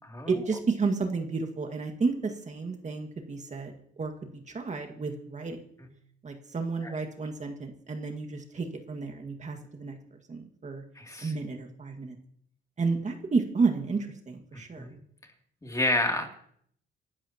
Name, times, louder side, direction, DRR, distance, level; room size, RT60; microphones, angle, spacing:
voice 1, 0.3-4.1 4.5-5.6 6.2-10.0 10.3-10.8 11.2-12.2 12.8-15.0, right 4 dB, 35° right, 4 dB, 1.9 m, -31 dB
voice 2, 11.0-11.3 14.8-15.0 15.6-16.3, left 1 dB, 15° left, 2 dB, 2.9 m, -29 dB
27.5 x 12.0 x 3.0 m, 0.65 s
cardioid pair, 90°, 20 cm